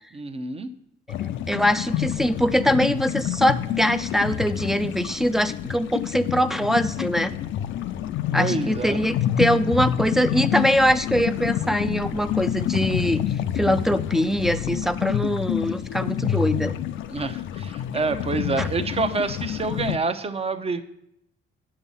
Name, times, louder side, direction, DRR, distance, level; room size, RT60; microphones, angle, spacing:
voice 1, 0.1-0.7 8.4-9.0 17.1-20.8, right 3 dB, 30° right, 9 dB, 0.8 m, -27 dB
sound 1, 1.1-20.0, left 11 dB, 75° left, 0.5 m, -28 dB
voice 2, 1.2-7.3 8.3-13.2 13.5-16.7 18.6-18.7, equal, ahead, 12 dB, 0.5 m, -23 dB
8.8 x 6.2 x 5.5 m, 0.77 s
cardioid pair, 90°, 20 cm